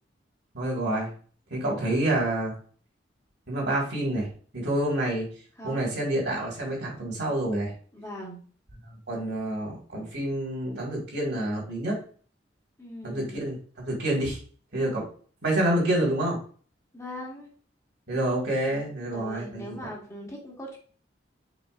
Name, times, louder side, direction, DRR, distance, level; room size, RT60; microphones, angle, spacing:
voice 1, 0.5-1.1 1.5-2.5 3.5-4.3 4.5-5.3 5.6-7.7 9.1-12.0 13.0-14.4 14.7-15.0 15.4-16.4 18.1-19.8, right 1 dB, 65° right, -2 dB, 2.0 m, -28 dB
voice 2, 5.6-5.9 7.9-8.4 12.8-13.3 16.9-17.5 19.0-20.8, equal, 15° left, -2 dB, 1.2 m, -40 dB
5.1 x 4.0 x 2.5 m, 0.43 s
head